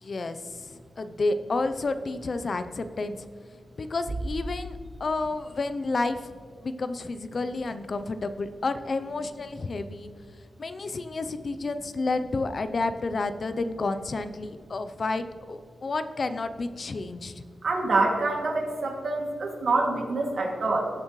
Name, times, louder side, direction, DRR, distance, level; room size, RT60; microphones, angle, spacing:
voice 1, 0.0-3.3 3.8-6.2 6.6-10.1 10.6-17.4, left 3 dB, 50° left, 10 dB, 0.6 m, -30 dB
Bass drum, 4.1-5.7, right 1 dB, 35° right, 1.2 m, -36 dB
voice 2, 17.6-20.9, right 3 dB, 70° right, 0 dB, 2.4 m, -26 dB
18.0 x 7.2 x 3.2 m, 2.1 s
wide cardioid pair, 100°, 0 cm